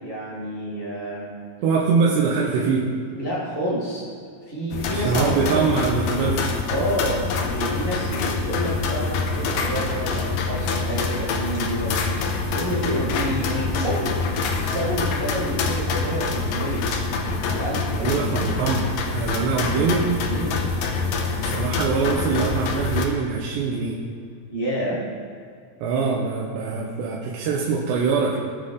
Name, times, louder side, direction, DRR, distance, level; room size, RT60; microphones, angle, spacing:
voice 1, 0.0-1.3 3.1-4.0 4.4-5.6 6.6-12.1 12.5-14.2 14.5-16.8 17.5-18.2 20.3-20.6 24.5-25.0, right 1 dB, 40° right, -8 dB, 0.8 m, -29 dB
voice 2, 1.6-2.9 4.9-6.5 17.9-20.1 21.3-24.0 25.8-28.4, right 5 dB, 75° right, -3 dB, 3.1 m, -23 dB
sound 1, 4.7-23.1, left 4 dB, 75° left, 2.0 m, -25 dB
19.5 x 7.8 x 3.9 m, 2.3 s
omnidirectional pair, 5.1 m